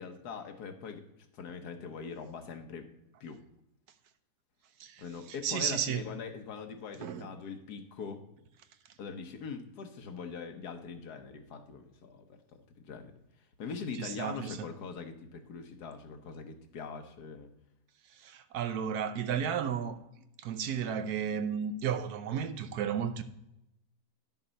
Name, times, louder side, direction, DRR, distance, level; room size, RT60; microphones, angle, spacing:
voice 1, 0.0-2.9 3.2-3.4 5.0-8.2 9.0-13.1 13.6-17.5, left 5 dB, 85° left, 1.5 m, -42 dB
voice 2, 5.4-6.0 7.0-7.3 14.0-14.6 18.2-20.0 20.4-23.2, right 8 dB, 80° right, 1.2 m, -33 dB
11.0 x 6.7 x 4.0 m
omnidirectional pair, 1.7 m